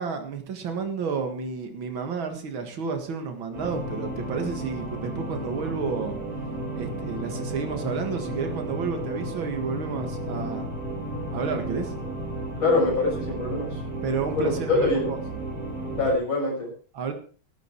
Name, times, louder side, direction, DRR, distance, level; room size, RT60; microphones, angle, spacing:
voice 1, 0.0-6.2 6.7-10.7 11.3-11.9 14.0-15.2 16.9-17.1, right 5 dB, 75° right, 5 dB, 2.6 m, -31 dB
sound 1, 3.5-16.1, right 1 dB, 50° right, 3.8 m, -33 dB
voice 2, 12.6-13.8 14.3-15.1 16.0-16.7, left 2 dB, 80° left, -1 dB, 7.6 m, -24 dB
13.5 x 13.0 x 4.6 m, 0.40 s
omnidirectional pair, 2.2 m